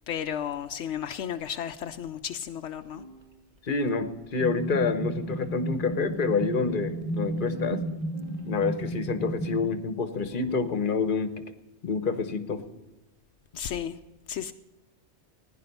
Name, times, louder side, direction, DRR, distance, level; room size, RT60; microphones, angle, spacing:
voice 1, 0.1-3.0 13.5-14.0 14.3-14.5, left 9 dB, 80° left, 0.9 m, -33 dB
sound 1, 2.8-8.7 9.5-9.6 10.0-10.7, right 2 dB, 35° right, 1.7 m, -48 dB
voice 2, 3.6-7.8 8.4-11.4 11.8-12.7, left 4 dB, 50° left, 1.2 m, -28 dB
sound 2, 4.4-9.7, right 1 dB, 5° right, 5.0 m, -33 dB
16.0 x 10.5 x 5.4 m
omnidirectional pair, 1.2 m